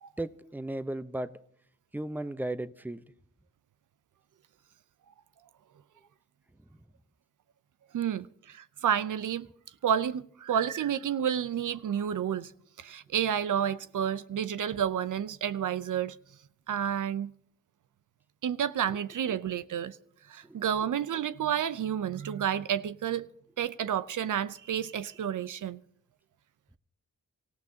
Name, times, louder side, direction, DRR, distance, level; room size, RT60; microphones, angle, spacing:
voice 1, 0.2-1.4 1.9-3.0 20.4-20.6, right 1 dB, 5° right, 0.8 m, -35 dB
voice 2, 7.9-9.5 9.8-12.5 12.8-16.2 16.7-17.3 18.4-20.0 20.3-23.3 23.6-25.8, right 9 dB, 75° right, 0.7 m, -30 dB
25.0 x 15.5 x 2.8 m
cardioid pair, 55°, 31 cm